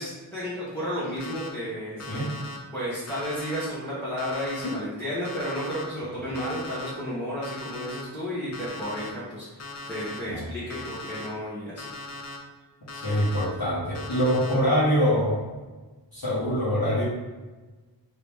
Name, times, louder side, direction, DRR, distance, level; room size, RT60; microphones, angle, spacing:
voice 1, 0.0-2.2 2.7-11.9, equal, 5° left, -12 dB, 1.1 m, -32 dB
Alarm, 1.2-1.5 2.0-2.6 3.1-3.7 4.2-4.7 5.2-5.8 6.3-6.9 7.4-8.0 8.5-9.1 9.6-10.2 10.7-11.3 11.8-12.4 12.9-13.4 13.9-14.5, left 2 dB, 40° left, 0.5 m, -39 dB
voice 2, 12.9-15.4 16.1-17.0, equal, 55° left, -11 dB, 1.3 m, -24 dB
3.0 x 2.8 x 3.5 m, 1.2 s
wide cardioid pair, 65°, 44 cm